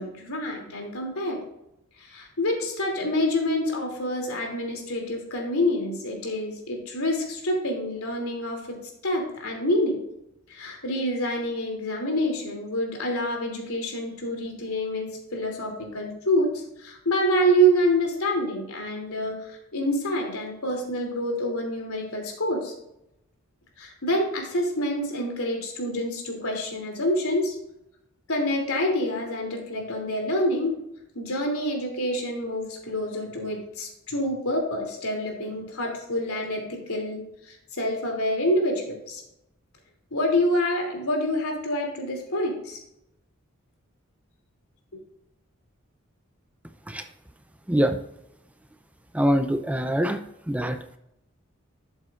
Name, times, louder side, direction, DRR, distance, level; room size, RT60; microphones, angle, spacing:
voice 1, 0.0-1.4 2.0-8.8 9.0-10.0 10.5-22.7 23.8-27.5 28.3-30.7 31.1-39.2 40.1-42.8, equal, 85° left, 1 dB, 2.8 m, -27 dB
voice 2, 49.1-50.2 50.5-50.8, equal, 5° right, 7 dB, 0.4 m, -24 dB
12.0 x 8.0 x 2.5 m, 0.81 s
head